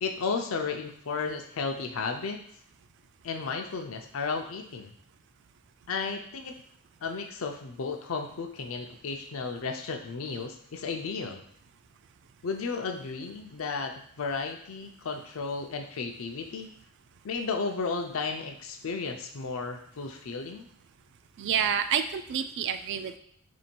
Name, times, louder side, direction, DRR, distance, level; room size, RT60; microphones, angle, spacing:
voice 1, 0.0-2.4 3.2-4.9 5.9-6.5 7.0-11.4 12.4-16.7 17.2-20.7, left 4 dB, 75° left, 5 dB, 0.5 m, -33 dB
voice 2, 21.4-23.2, right 8 dB, 60° right, 10 dB, 0.3 m, -28 dB
3.0 x 2.7 x 4.4 m, 0.69 s
head